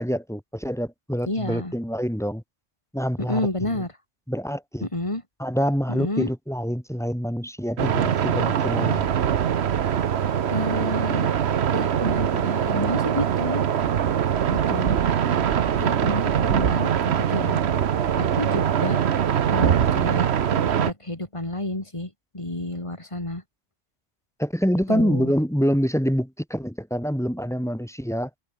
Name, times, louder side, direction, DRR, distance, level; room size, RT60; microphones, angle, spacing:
voice 1, 0.0-2.4 2.9-3.4 4.3-4.9 5.4-9.1 24.4-28.3, equal, ahead, 2.4 m, -26 dB
voice 2, 1.3-1.7 3.2-3.9 4.8-5.2 5.9-6.3 10.5-11.3 11.7-13.7 14.5-15.0 15.8-17.6 18.2-19.0 19.5-20.3 20.8-23.4 24.9-25.3, left 1 dB, 25° left, 2.8 m, -30 dB
sound 1, 7.8-20.9, right 9 dB, 65° right, 1.1 m, -22 dB
omnidirectional pair, 1.2 m